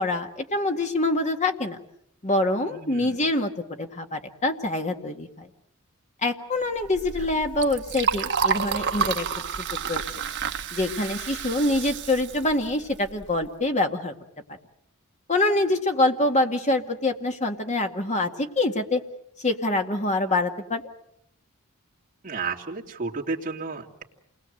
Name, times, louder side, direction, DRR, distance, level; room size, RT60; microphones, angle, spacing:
voice 1, 0.0-1.8 2.2-3.5 3.8-5.5 6.2-9.3 9.6-10.0 10.7-14.1 15.3-19.0 19.4-20.8, left 2 dB, 30° left, 5 dB, 2.0 m, -25 dB
voice 2, 2.7-3.2 22.2-24.0, right 4 dB, 40° right, -2 dB, 3.0 m, -32 dB
Liquid, 6.8-13.5, right 6 dB, 55° right, 1.2 m, -30 dB
28.5 x 20.5 x 7.9 m, 0.75 s
head